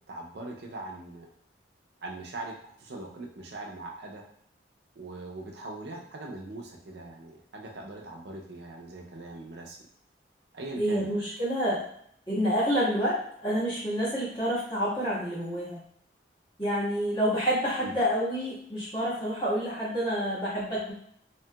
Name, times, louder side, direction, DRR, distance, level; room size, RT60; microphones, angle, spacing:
voice 1, 0.1-1.3 2.0-4.2 5.0-9.8 10.5-11.2 17.8-18.0, right 2 dB, 60° right, 0 dB, 0.5 m, -41 dB
voice 2, 10.8-11.8 12.3-15.8 16.6-20.9, equal, 25° left, -10 dB, 1.4 m, -28 dB
2.8 x 2.8 x 2.2 m, 0.67 s
head